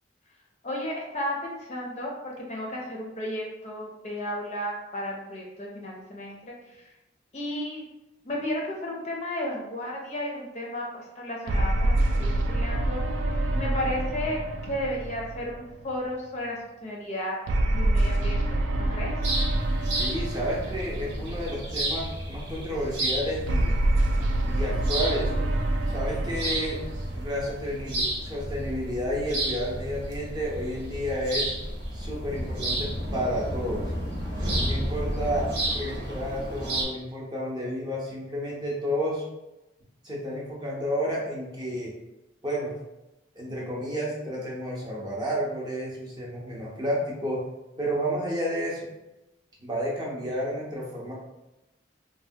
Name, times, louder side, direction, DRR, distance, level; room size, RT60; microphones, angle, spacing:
voice 1, 0.6-6.5 7.3-7.8 8.2-13.0 13.5-17.4 17.7-19.1, left 1 dB, 35° left, -2 dB, 0.5 m, -33 dB
sound 1, 11.5-16.0 17.5-21.8 23.5-28.0, right 1 dB, 90° right, 0.3 m, -27 dB
sound 2, 19.2-36.8, right 1 dB, 65° right, 0.9 m, -32 dB
voice 2, 19.9-23.7 24.5-25.3 25.9-26.9 27.1-31.5 31.9-33.9 34.6-39.3 40.0-41.9 42.4-42.7 43.3-47.4 47.8-48.9 49.6-51.1, equal, 25° right, -4 dB, 0.6 m, -31 dB
3.2 x 2.1 x 2.7 m, 0.97 s
head